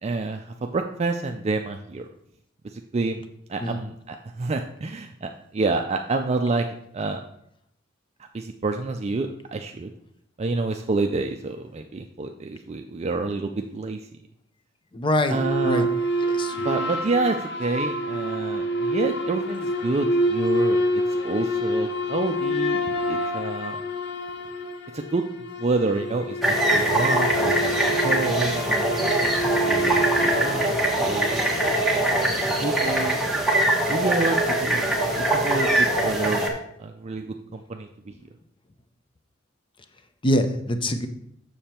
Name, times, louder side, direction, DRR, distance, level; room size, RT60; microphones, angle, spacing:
voice 1, 0.0-2.1 2.6-3.2 3.5-6.7 6.9-7.2 8.3-9.9 10.4-14.0 15.3-15.9 16.6-23.8 24.9-25.3 25.6-27.7 28.0-31.3 31.9-33.2 33.9-34.8 35.1-36.5 36.8-38.1, right 3 dB, 35° right, 4 dB, 0.4 m, -28 dB
voice 2, 14.9-15.4 15.7-15.9 16.4-16.5 40.2-41.1, left 1 dB, 25° left, 8 dB, 0.6 m, -23 dB
sound 1, 15.3-31.9, equal, 60° left, 0.8 m, -27 dB
sound 2, 26.4-36.5, right 1 dB, ahead, 1.2 m, -22 dB
7.1 x 6.5 x 4.3 m, 0.72 s
head